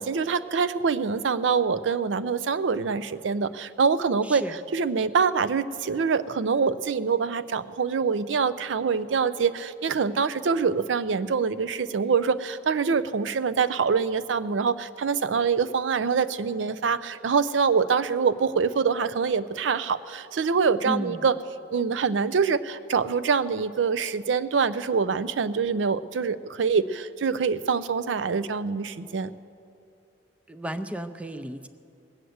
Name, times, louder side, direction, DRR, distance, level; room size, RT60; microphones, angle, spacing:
voice 1, 0.0-4.5 4.7-21.3 21.7-29.3, right 5 dB, 90° right, 15 dB, 0.5 m, -25 dB
voice 2, 4.2-4.6 20.8-21.3 30.5-31.7, equal, 5° right, 10 dB, 0.4 m, -33 dB
19.5 x 7.9 x 7.8 m, 2.6 s
head